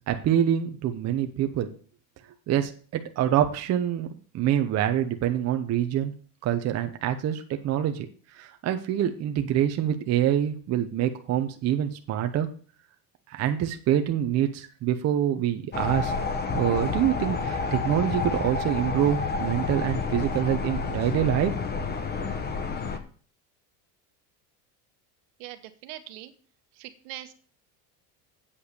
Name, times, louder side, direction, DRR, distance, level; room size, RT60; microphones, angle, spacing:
voice 1, 0.1-1.7 2.5-4.1 4.3-6.1 6.4-8.1 8.3-12.5 13.3-16.1 16.5-21.6, right 10 dB, 40° right, 6 dB, 0.9 m, -25 dB
sound 1, 15.7-23.0, left 4 dB, 25° left, 1.1 m, -29 dB
voice 2, 25.4-26.3 26.8-27.3, right 14 dB, 75° right, 9 dB, 1.3 m, -41 dB
8.4 x 5.5 x 6.8 m, 0.42 s
cardioid pair, 140°, 41 cm